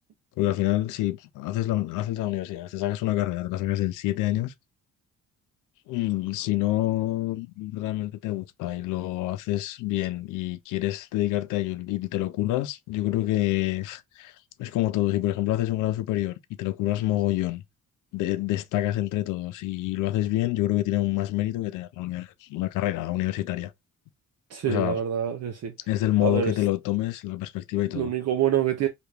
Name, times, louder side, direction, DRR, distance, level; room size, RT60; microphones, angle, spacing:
voice 1, 0.4-4.5 5.9-14.3 14.6-17.6 18.1-23.7 24.7-25.0 25.9-28.1, left 15 dB, 90° left, 0.5 m, -27 dB
voice 2, 24.5-25.7 26.2-26.5 27.9-28.9, right 9 dB, 55° right, 0.6 m, -26 dB
2.9 x 2.5 x 3.2 m
cardioid pair, 90°, 30 cm